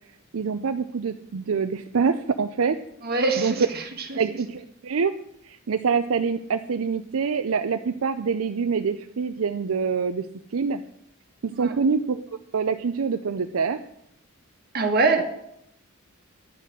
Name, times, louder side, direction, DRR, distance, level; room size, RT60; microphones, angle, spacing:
voice 1, 0.3-2.8 3.4-3.5 4.2-5.1 5.4-10.3 10.5-10.8 11.4-12.2 12.5-13.8 15.2-15.3, right 5 dB, 75° right, 8 dB, 0.5 m, -25 dB
voice 2, 3.0-4.2 11.5-11.7 14.7-15.2, right 3 dB, 45° right, 3 dB, 1.7 m, -24 dB
11.0 x 6.6 x 7.7 m, 0.76 s
head